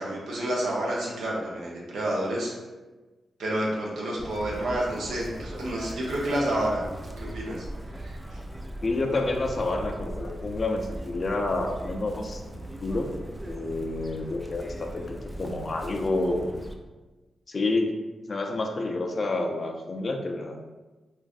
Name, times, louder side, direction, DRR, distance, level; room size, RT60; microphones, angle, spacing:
voice 1, 0.0-2.5 3.4-6.8 7.2-7.6 7.9-8.4, right 1 dB, 85° right, -4 dB, 0.7 m, -29 dB
Chirp tweet, 4.2-16.7, right 1 dB, 15° right, 0.4 m, -39 dB
voice 2, 8.8-13.1 13.4-16.5 17.5-17.9 18.3-20.6, left 2 dB, 50° left, 3 dB, 0.4 m, -29 dB
3.0 x 2.5 x 2.4 m, 1.2 s
cardioid pair, 50°, 0 cm